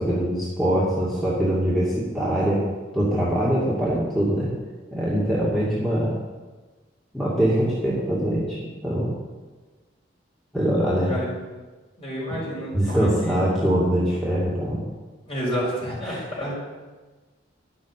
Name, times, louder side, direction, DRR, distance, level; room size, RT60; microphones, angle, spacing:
voice 1, 0.0-2.6 2.9-4.5 4.9-6.1 7.1-9.1 10.5-11.1 12.7-14.8 16.0-16.2, equal, ahead, -9 dB, 2.6 m, -23 dB
voice 2, 12.0-13.5 15.3-16.5, equal, 30° left, -5 dB, 5.5 m, -30 dB
11.5 x 8.4 x 8.5 m, 1.3 s
head